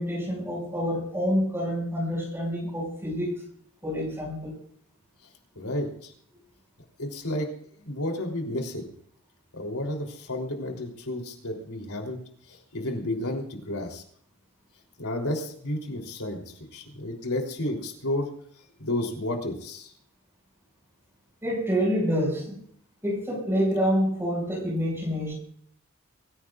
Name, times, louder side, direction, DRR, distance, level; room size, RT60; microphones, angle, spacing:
voice 1, 0.0-3.4 3.8-4.5 21.4-22.6 23.0-25.3, equal, 10° right, 0 dB, 5.9 m, -27 dB
voice 2, 5.6-6.1 7.0-7.5 7.8-8.9 9.5-12.2 12.5-14.0 15.0-16.4 16.7-18.3 18.8-19.9, left 1 dB, 75° left, 1 dB, 3.4 m, -31 dB
24.5 x 15.5 x 2.5 m, 0.63 s
head